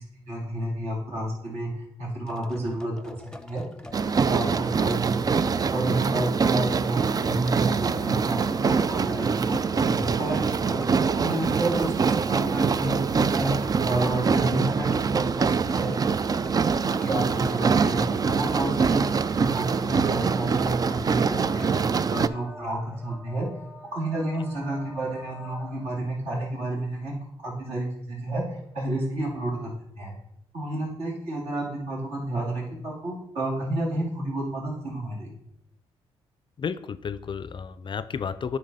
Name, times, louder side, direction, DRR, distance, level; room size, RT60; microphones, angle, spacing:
voice 1, 0.0-3.1 3.4-3.6 4.3-5.4 5.7-7.0 7.2-10.8 11.1-15.9 17.0-23.5 23.9-27.1 27.4-29.7 30.0-30.1 30.5-35.3, right 1 dB, 70° right, -3 dB, 2.8 m, -30 dB
sound 1, 2.3-21.8, left 1 dB, 5° left, 0.7 m, -44 dB
dishwasher swishing, 3.9-22.3, right 5 dB, 35° right, 0.3 m, -24 dB
sound 2, 20.0-26.2 27.6-27.7 28.6-28.7, equal, 15° right, 1.1 m, -46 dB
voice 2, 36.6-38.6, left 6 dB, 45° left, 14 dB, 0.4 m, -32 dB
9.0 x 3.4 x 5.4 m, 0.80 s
supercardioid pair, 60°, 11 cm